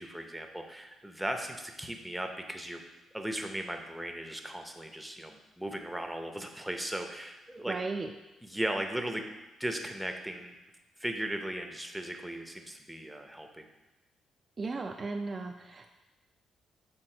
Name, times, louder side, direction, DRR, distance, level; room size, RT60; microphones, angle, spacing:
voice 1, 0.0-2.8 3.1-7.8 8.4-9.3 9.6-10.5 11.0-13.6, right 1 dB, 5° right, 4 dB, 0.7 m, -37 dB
voice 2, 7.7-8.1 14.6-15.9, right 3 dB, 35° right, 3 dB, 0.4 m, -35 dB
6.6 x 3.5 x 4.4 m, 1.0 s
cardioid pair, 90°, 0 cm